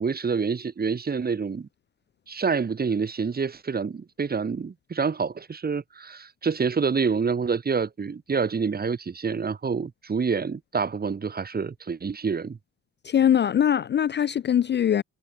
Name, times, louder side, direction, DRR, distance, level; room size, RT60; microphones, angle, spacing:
voice 1, 0.0-1.7 2.3-12.6, right 5 dB, 30° right, 1.7 m, -27 dB
voice 2, 13.0-15.0, left 9 dB, 35° left, 0.4 m, -22 dB
cardioid pair, 90°, 30 cm